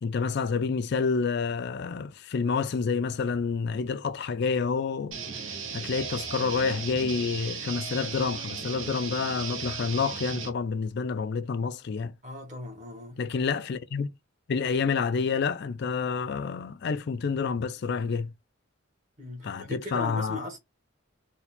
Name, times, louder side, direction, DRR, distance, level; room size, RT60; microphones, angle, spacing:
voice 1, 0.0-5.2 5.7-12.1 13.2-14.1 14.5-18.3 19.4-20.5, left 5 dB, 55° left, 0.4 m, -28 dB
sound 1, 5.1-10.5, right 6 dB, 75° right, 0.9 m, -36 dB
voice 2, 12.2-13.2 19.2-20.6, left 1 dB, 40° right, 1.5 m, -38 dB
4.1 x 2.2 x 4.2 m
head